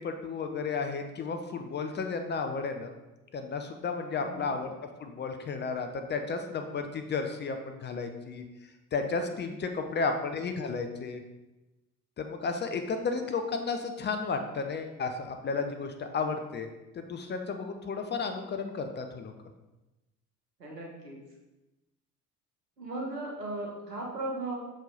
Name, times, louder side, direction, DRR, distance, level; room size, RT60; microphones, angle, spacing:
voice 1, 0.0-2.9 3.3-4.7 5.0-8.4 8.9-11.2 12.2-16.7 16.9-19.3, left 4 dB, 25° left, 6 dB, 0.6 m, -33 dB
voice 2, 4.2-4.5 9.8-10.1 20.6-21.2 22.8-24.6, right 2 dB, 85° right, -3 dB, 1.5 m, -37 dB
6.3 x 4.9 x 4.0 m, 1.0 s
figure-of-eight pair, 60°, 48 cm